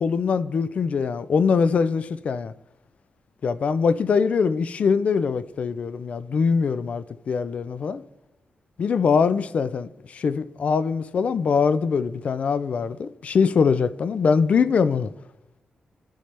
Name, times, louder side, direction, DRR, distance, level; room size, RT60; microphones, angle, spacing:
voice 1, 0.0-2.5 3.4-8.0 8.8-15.1, left 5 dB, 50° left, 0.4 m, -22 dB
13.5 x 5.6 x 3.3 m
wide cardioid pair, 170°, 3 cm